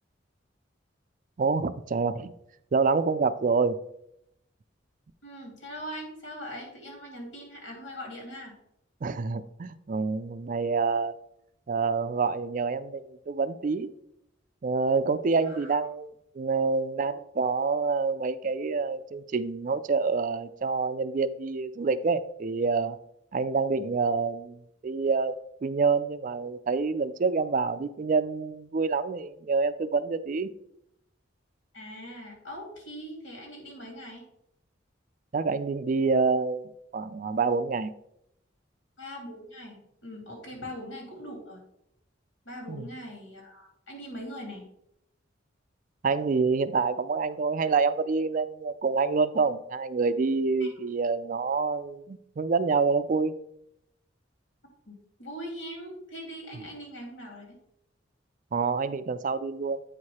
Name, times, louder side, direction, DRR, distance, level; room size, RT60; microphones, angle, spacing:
voice 1, 1.4-2.3 2.7-3.8 9.0-11.2 11.7-13.9 14.6-23.0 23.3-30.5 35.3-37.9 42.7-42.9 46.0-53.3 58.5-59.8, right 4 dB, 45° right, 13 dB, 0.4 m, -27 dB
voice 2, 5.2-8.5 15.5-15.8 31.7-34.2 39.0-41.6 42.4-44.7 50.6-50.7 54.9-55.0 55.2-57.6, equal, 90° left, 0 dB, 2.8 m, -41 dB
8.8 x 4.8 x 4.2 m, 0.77 s
head